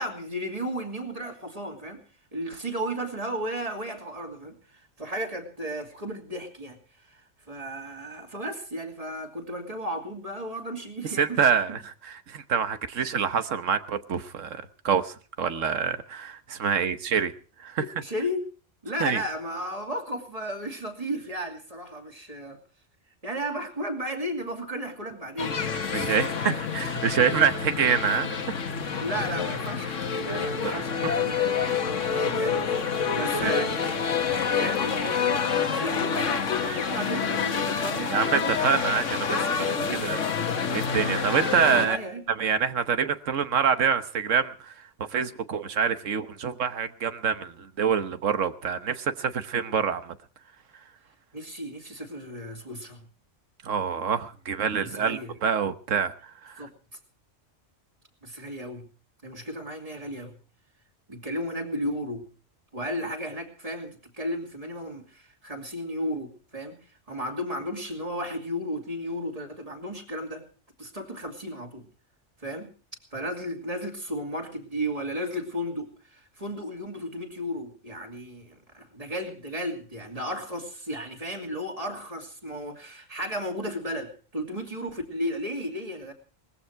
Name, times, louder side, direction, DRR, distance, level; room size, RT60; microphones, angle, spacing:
voice 1, 0.0-2.0 2.3-11.5 16.6-16.8 17.8-18.5 18.8-22.6 23.2-26.6 28.9-32.8 33.1-38.5 39.7-40.1 41.8-42.2 51.3-53.0 54.8-55.3 56.6-56.7 58.2-58.9 59.2-60.3 61.1-62.2 62.7-66.8 67.1-70.5 70.8-71.9 72.4-72.7 73.1-86.1, equal, 30° right, 4 dB, 2.8 m, -34 dB
voice 2, 11.2-17.3 17.6-17.9 19.0-19.2 25.9-28.5 30.6-31.1 33.4-33.5 38.1-39.7 40.0-40.3 40.7-42.0 42.4-44.7 45.1-50.1 53.6-56.1 56.4-56.7, right 7 dB, 85° right, 11 dB, 1.5 m, -26 dB
sound 1, 25.4-41.9, left 6 dB, 75° left, 1.7 m, -27 dB
20.0 x 15.0 x 4.6 m, 0.39 s
omnidirectional pair, 1.3 m